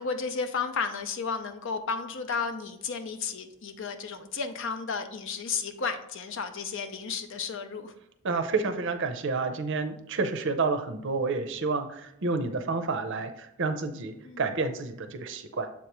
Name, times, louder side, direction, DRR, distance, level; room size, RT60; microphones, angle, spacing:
voice 1, 0.0-7.9 14.2-14.5, left 5 dB, 55° left, 9 dB, 0.6 m, -33 dB
voice 2, 8.2-15.7, right 4 dB, 55° right, 8 dB, 0.6 m, -29 dB
7.3 x 3.0 x 4.6 m, 0.81 s
head